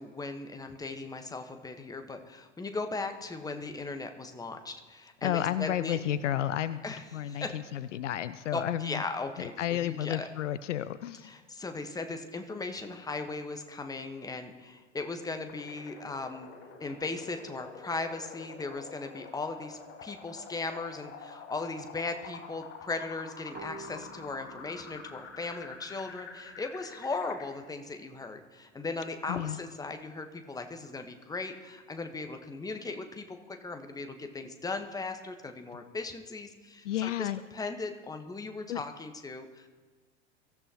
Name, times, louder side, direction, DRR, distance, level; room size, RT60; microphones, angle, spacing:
voice 1, 0.0-6.0 6.8-7.6 8.5-10.3 11.2-16.5 16.8-39.7, left 3 dB, 10° left, 6 dB, 1.2 m, -38 dB
voice 2, 5.2-6.8 7.1-9.0 9.4-11.3 29.3-29.6 36.8-37.4 38.7-38.8, left 11 dB, 65° left, 15 dB, 0.6 m, -32 dB
sound 1, 15.5-27.5, left 5 dB, 35° left, 4.4 m, -48 dB
sound 2, 23.5-27.0, right 4 dB, 25° right, 1.1 m, -51 dB
23.5 x 14.0 x 3.0 m, 1.4 s
figure-of-eight pair, 85°, 39 cm